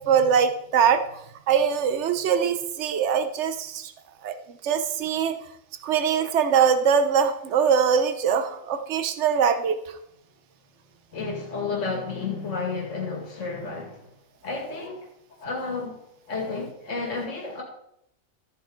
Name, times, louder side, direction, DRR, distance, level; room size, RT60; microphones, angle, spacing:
voice 1, 0.1-1.0 1.5-3.9 4.2-4.3 4.6-5.4 5.8-9.8, right 7 dB, 60° right, 1.1 m, -22 dB
voice 2, 11.1-14.1 14.4-15.1 15.4-16.0 16.3-17.6, left 4 dB, 65° left, 2.5 m, -31 dB
13.0 x 9.0 x 3.9 m
omnidirectional pair, 1.4 m